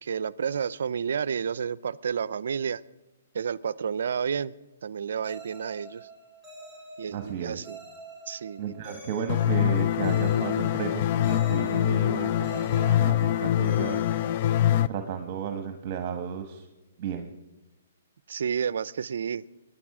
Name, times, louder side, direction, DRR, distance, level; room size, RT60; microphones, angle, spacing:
voice 1, 0.0-2.8 3.3-4.5 4.8-6.1 7.0-7.8 8.3-8.7 18.3-19.4, right 7 dB, 70° right, 20 dB, 0.5 m, -30 dB
sound 1, 5.2-15.0, right 1 dB, 20° left, 6.4 m, -46 dB
voice 2, 7.1-7.6 8.6-14.0 14.9-16.7 17.0-17.3, right 7 dB, 40° right, 6 dB, 1.1 m, -34 dB
sound 2, 9.3-14.9, left 11 dB, 45° left, 0.4 m, -24 dB
22.0 x 9.7 x 4.8 m, 1.1 s
hypercardioid pair, 145°, 0 cm